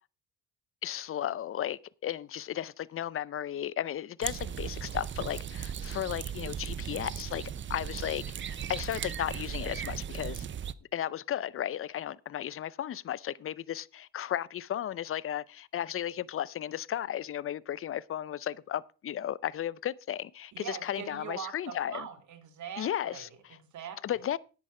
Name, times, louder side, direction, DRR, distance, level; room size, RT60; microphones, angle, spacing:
voice 1, 0.8-10.4 10.9-22.1 22.8-23.6 24.0-24.4, left 11 dB, 45° left, 0.6 m, -35 dB
sound 1, 4.2-10.7, right 8 dB, 40° right, 0.6 m, -37 dB
voice 2, 20.5-23.2 23.5-24.2, right 8 dB, 70° right, 2.1 m, -42 dB
10.0 x 8.7 x 4.9 m
cardioid pair, 90°, 30 cm